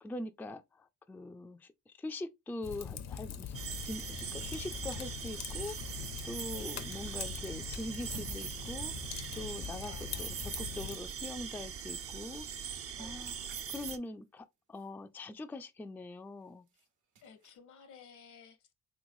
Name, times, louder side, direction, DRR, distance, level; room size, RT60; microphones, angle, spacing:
voice 1, 0.0-3.6 3.8-13.3 13.7-16.7, left 2 dB, 5° left, 0.3 m, -43 dB
Fire, 2.6-11.0, left 8 dB, 60° left, 0.6 m, -43 dB
sound 1, 3.5-14.0, right 7 dB, 50° right, 0.5 m, -41 dB
voice 2, 6.5-6.8 9.8-10.5 12.9-13.3 16.7-16.9 17.2-18.7, left 6 dB, 75° left, 1.0 m, -56 dB
sound 2, 8.0-11.8 12.2-12.3 12.6-15.6 16.0-17.6, right 4 dB, 90° right, 1.3 m, -60 dB
3.5 x 3.1 x 2.6 m
cardioid pair, 90°, 30 cm